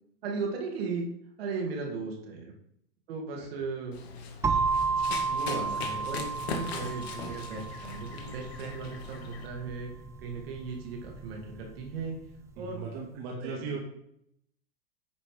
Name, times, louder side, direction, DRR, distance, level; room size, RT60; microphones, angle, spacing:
voice 1, 0.2-1.0 1.4-2.5 3.1-4.0 5.3-9.9 10.2-12.2 12.6-12.9 13.4-13.8, right 4 dB, 70° right, 0 dB, 2.6 m, -37 dB
Run, 3.9-9.5, left 5 dB, 90° left, 1.7 m, -40 dB
sound 1, 4.4-12.3, right 4 dB, 10° right, 0.4 m, -33 dB
voice 2, 12.6-13.9, right 4 dB, 45° right, -2 dB, 2.1 m, -38 dB
9.6 x 4.3 x 5.1 m, 0.73 s
supercardioid pair, 145°, 30 cm